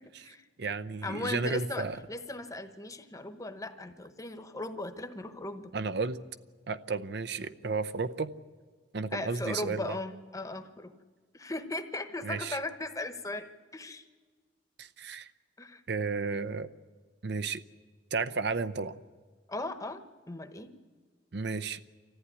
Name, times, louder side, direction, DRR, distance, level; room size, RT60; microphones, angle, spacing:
voice 1, 0.0-0.5 1.0-5.7 9.1-10.9 11.3-13.5 13.7-14.0 15.6-15.8 19.5-20.7, left 2 dB, 20° left, 9 dB, 1.1 m, -38 dB
voice 2, 0.6-2.0 5.7-6.2 6.7-8.3 8.9-10.0 12.2-12.6 14.8-15.3 15.9-16.7 17.2-17.6 18.1-19.0 21.3-21.8, right 4 dB, 60° right, 12 dB, 0.7 m, -33 dB
25.0 x 14.5 x 9.8 m, 1.5 s
head